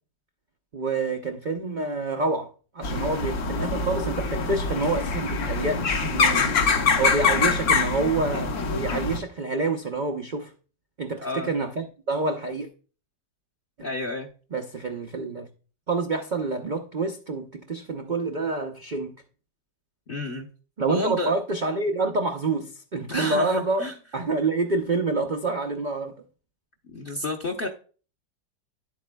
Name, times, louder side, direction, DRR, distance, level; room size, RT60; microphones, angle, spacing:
voice 1, 0.7-2.5 2.7-6.5 6.9-8.5 8.8-10.5 11.0-12.7 14.5-15.5 15.9-19.1 20.8-26.1, right 3 dB, 75° right, 0.4 m, -27 dB
sound 1, 2.8-9.2, left 4 dB, 60° left, 1.4 m, -24 dB
voice 2, 11.2-11.5 13.8-14.3 20.1-20.5 20.9-21.3 23.1-23.9 26.9-27.7, left 2 dB, 45° left, 0.8 m, -30 dB
10.5 x 8.2 x 2.2 m
omnidirectional pair, 1.9 m